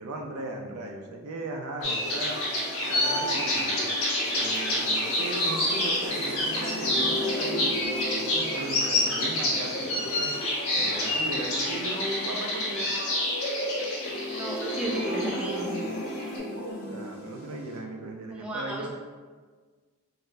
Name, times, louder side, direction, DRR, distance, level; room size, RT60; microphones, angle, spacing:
voice 1, 0.0-2.4 2.9-3.9 4.3-7.8 8.1-10.3 10.8-13.0 16.8-18.9, right 2 dB, 70° right, 2 dB, 0.4 m, -37 dB
sound 1, 1.8-16.4, left 1 dB, 65° left, 1.1 m, -28 dB
sound 2, 1.8-17.8, equal, 45° left, 0.7 m, -36 dB
voice 2, 14.4-15.7 18.3-18.9, right 1 dB, 5° right, -3 dB, 0.4 m, -33 dB
3.9 x 2.1 x 2.6 m, 1.5 s
head